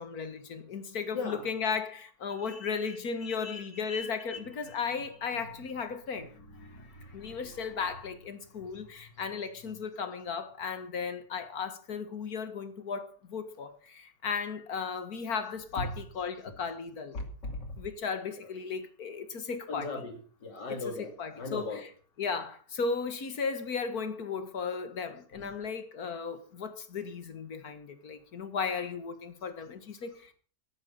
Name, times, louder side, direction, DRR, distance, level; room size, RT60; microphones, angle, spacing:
voice 1, 0.0-6.3 7.1-17.2 17.8-20.1 20.7-21.9 22.2-30.3, left 5 dB, 60° left, 2.1 m, -36 dB
voice 2, 1.1-1.4 2.5-2.7 3.2-3.6 3.9-4.4 6.6-7.4 15.8-15.9 17.1-17.7 19.7-20.1 20.4-21.8 25.4-25.5, left 3 dB, 80° left, 3.1 m, -38 dB
13.0 x 11.5 x 5.5 m
omnidirectional pair, 1.8 m